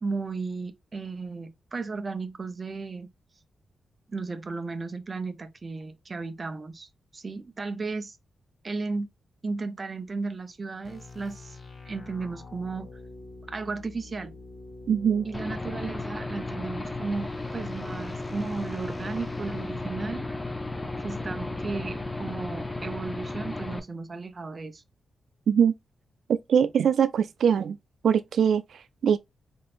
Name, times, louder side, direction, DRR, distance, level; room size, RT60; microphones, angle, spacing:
voice 1, 0.0-3.1 4.1-8.2 8.6-9.1 9.4-11.6 11.9-12.9 13.5-14.3 15.2-20.3 21.0-24.8, right 4 dB, 30° right, 0.6 m, -34 dB
sound 1, 10.8-22.1, left 3 dB, 35° left, 0.9 m, -46 dB
voice 2, 14.9-15.3 25.5-25.7 26.5-27.8 28.0-29.2, right 7 dB, 70° right, 0.3 m, -22 dB
Aircraft / Engine, 15.3-23.8, left 2 dB, 15° left, 0.5 m, -34 dB
3.8 x 3.7 x 2.4 m
wide cardioid pair, 150°, 0 cm